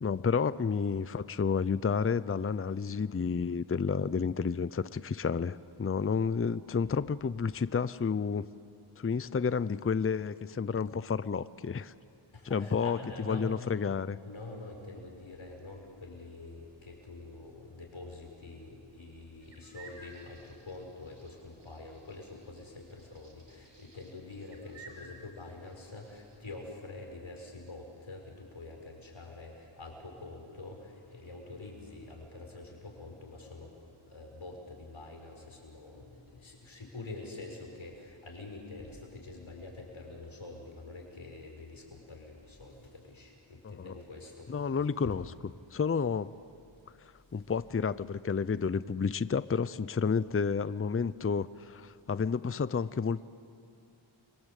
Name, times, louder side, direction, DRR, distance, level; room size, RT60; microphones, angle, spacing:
voice 1, 0.0-8.5 9.0-11.9 12.5-13.0 13.3-14.2 43.6-43.9 44.5-45.3 45.7-46.3 47.0-53.2, left 5 dB, 30° left, 16 dB, 0.6 m, -30 dB
voice 2, 12.3-13.5 14.2-33.7 34.0-45.2 47.4-47.5, left 3 dB, 70° left, 1 dB, 5.8 m, -46 dB
sound 1, 19.4-26.4, right 3 dB, 60° right, 4.3 m, -55 dB
29.5 x 24.0 x 8.3 m, 2.5 s
wide cardioid pair, 60°, 48 cm